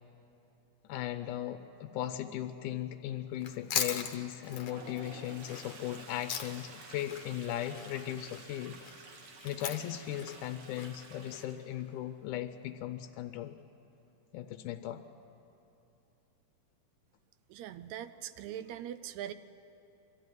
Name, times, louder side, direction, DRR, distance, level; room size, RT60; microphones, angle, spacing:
voice 1, 0.9-9.1 9.4-13.6 14.3-15.0, left 12 dB, 80° left, 8 dB, 2.1 m, -38 dB
Chewing mastication, 3.3-6.8 7.1-11.4, left 8 dB, 60° left, 1.6 m, -39 dB
Toilet flush, 4.2-11.9, right 4 dB, 55° right, 2.4 m, -51 dB
voice 2, 17.5-19.3, right 11 dB, 80° right, 13 dB, 1.7 m, -41 dB
23.5 x 13.5 x 9.5 m, 2.9 s
omnidirectional pair, 3.7 m